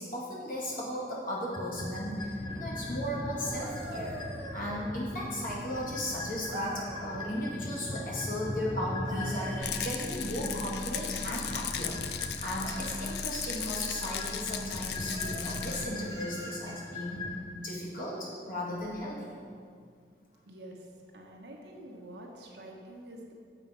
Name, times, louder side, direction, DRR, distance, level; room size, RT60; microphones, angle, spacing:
voice 1, 0.0-4.1 4.5-17.2 17.5-19.4, left 1 dB, 50° left, -5 dB, 1.8 m, -36 dB
sound 1, 1.5-17.4, left 1 dB, 25° left, 0.6 m, -40 dB
sound 2, 3.3-5.3 6.5-7.4 8.8-10.5 12.6-13.2 14.0-14.4 15.1-16.9 18.8-19.0, right 1 dB, 20° right, 0.6 m, -45 dB
Rattle, 9.6-15.9, left 7 dB, 70° left, 0.4 m, -36 dB
voice 2, 20.5-20.8 21.1-23.3, right 1 dB, 80° right, 0 dB, 1.1 m, -47 dB
7.2 x 4.8 x 5.5 m, 2.2 s
head